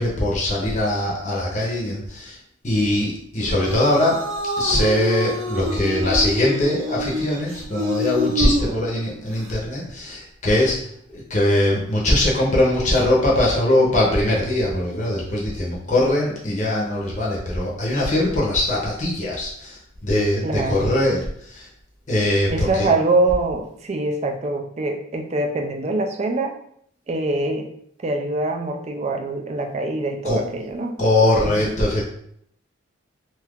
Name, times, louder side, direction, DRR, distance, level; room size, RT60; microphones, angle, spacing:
voice 1, 0.0-2.4 2.6-4.2 4.6-10.8 11.1-21.6 22.1-22.9 30.2-30.4 31.0-32.0, left 1 dB, 35° left, -4 dB, 0.7 m, -21 dB
sound 1, 3.4-9.5, equal, 80° right, 0.6 m, -27 dB
voice 2, 20.4-20.9 22.5-26.5 27.1-27.7 28.0-31.0 31.4-31.7, right 2 dB, 30° right, 4 dB, 0.3 m, -24 dB
2.7 x 2.4 x 3.5 m, 0.69 s
head